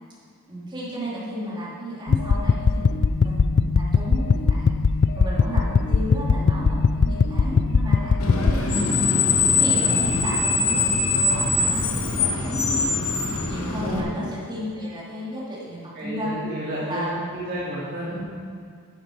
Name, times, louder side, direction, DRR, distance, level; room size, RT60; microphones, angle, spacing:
voice 1, 0.5-4.7 5.2-9.1 9.6-16.4 16.9-17.4 18.1-18.3, equal, 20° right, -7 dB, 2.7 m, -33 dB
sound 1, 2.1-8.5, left 5 dB, 55° left, 0.4 m, -20 dB
Screech, 8.2-14.0, left 4 dB, 80° left, 1.3 m, -22 dB
voice 2, 13.8-14.1 16.0-17.0 17.3-18.3, right 1 dB, 50° right, -7 dB, 1.9 m, -31 dB
10.5 x 10.0 x 4.6 m, 2.1 s
head